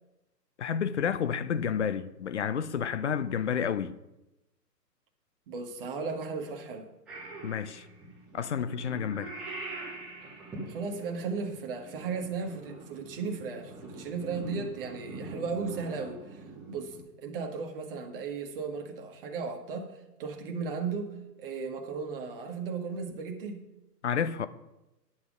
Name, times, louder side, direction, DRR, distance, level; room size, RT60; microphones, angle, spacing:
voice 1, 0.6-4.0 7.4-7.9 8.3-9.3 24.0-24.5, left 7 dB, 45° left, 0.6 m, -30 dB
voice 2, 5.5-6.9 10.6-23.6, right 5 dB, 35° right, 1.4 m, -36 dB
Purr / Meow, 7.1-17.0, right 2 dB, ahead, 0.6 m, -44 dB
10.5 x 7.4 x 5.0 m
hypercardioid pair, 140°, 49 cm